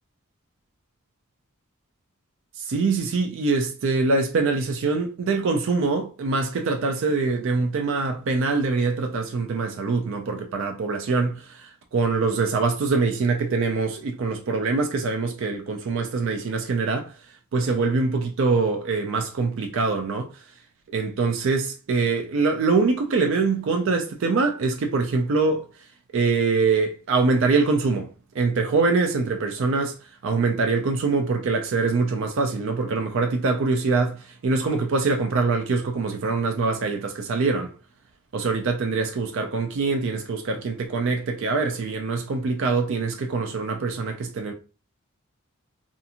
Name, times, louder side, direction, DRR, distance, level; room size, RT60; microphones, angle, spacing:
voice 1, 2.6-17.1 17.5-20.4 20.9-25.6 26.1-28.1 28.3-29.9 30.2-37.7 38.3-44.5, right 4 dB, 65° right, 0.4 m, -24 dB
2.5 x 2.4 x 2.8 m
head